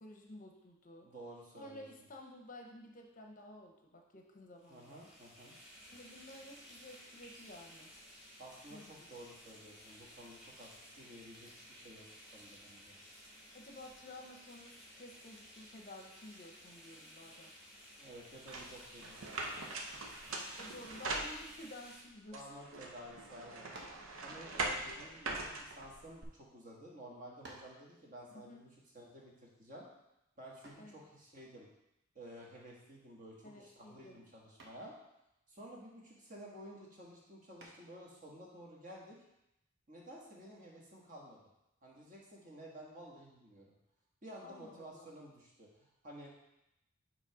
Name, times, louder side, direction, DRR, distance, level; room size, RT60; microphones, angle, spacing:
voice 1, 0.0-1.1 1.6-5.1 5.9-7.9 8.7-9.1 13.5-17.5 20.6-22.4 28.3-28.6 30.8-31.0 33.4-34.2 44.4-45.1, left 1 dB, 40° left, 2 dB, 0.7 m, -53 dB
voice 2, 1.0-1.8 4.7-5.5 8.4-13.0 18.0-19.7 22.3-23.7 24.2-29.9 30.4-31.7 32.1-35.0 35.5-39.2 39.9-41.4 41.8-43.7 44.2-46.3, right 1 dB, 40° right, -3 dB, 1.4 m, -53 dB
sound 1, 4.6-22.0, equal, ahead, 1.8 m, -56 dB
Sliding closet door, 18.5-21.8 22.3-26.2, right 2 dB, 75° right, 0.8 m, -42 dB
sound 2, 23.7-24.1 25.0-26.2 26.9-27.0 27.4-27.8 30.6-31.0 32.9-33.3 33.6-34.0 34.6-34.9 37.6-38.0, right 1 dB, 55° right, 1.1 m, -55 dB
7.4 x 3.2 x 4.8 m, 0.86 s
head